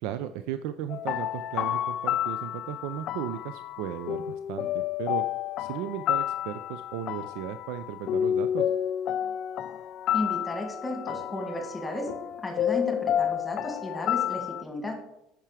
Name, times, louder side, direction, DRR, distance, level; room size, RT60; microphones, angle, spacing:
voice 1, 0.0-5.2 5.6-8.7, right 10 dB, 80° right, 11 dB, 0.4 m, -35 dB
sound 1, 0.9-14.6, left 11 dB, 55° left, 0.4 m, -30 dB
voice 2, 10.1-12.1 12.4-15.0, left 1 dB, 10° left, 3 dB, 1.9 m, -33 dB
8.9 x 5.9 x 4.9 m, 0.82 s
cardioid pair, 125°, 0 cm